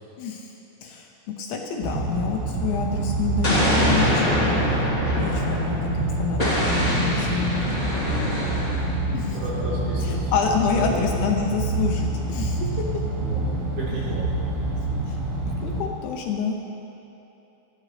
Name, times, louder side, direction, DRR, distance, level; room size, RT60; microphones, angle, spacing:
voice 1, 0.2-0.5 0.8-1.1 1.4-4.6 5.1-7.6 9.1-9.4 10.0-12.7 14.9-15.2 15.6-16.6, left 5 dB, 75° left, 1 dB, 2.9 m, -28 dB
sound 1, 1.8-15.8, right 2 dB, 50° right, 3.2 m, -27 dB
Explosion, 3.4-5.9 6.4-8.9, left 1 dB, 15° left, 1.3 m, -24 dB
voice 2, 9.3-10.3 10.7-11.1 13.2-13.4 13.8-14.3, right 1 dB, 75° right, -9 dB, 6.4 m, -33 dB
19.0 x 14.0 x 3.3 m, 2.9 s
omnidirectional pair, 5.8 m